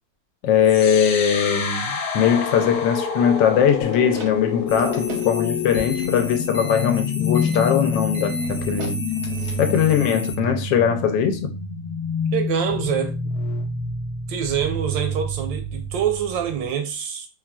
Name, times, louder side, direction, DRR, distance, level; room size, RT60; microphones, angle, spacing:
voice 1, 0.4-9.0 9.6-11.6, left 8 dB, 85° left, 1.3 m, -20 dB
sound 1, 0.6-16.7, left 4 dB, 65° left, 1.1 m, -27 dB
sound 2, 3.7-9.9, right 3 dB, 55° right, 0.7 m, -39 dB
sound 3, 4.7-10.4, left 2 dB, 35° left, 1.0 m, -34 dB
voice 2, 12.3-13.1 14.3-17.3, right 8 dB, 90° right, 1.4 m, -25 dB
3.9 x 2.4 x 2.2 m
omnidirectional pair, 1.9 m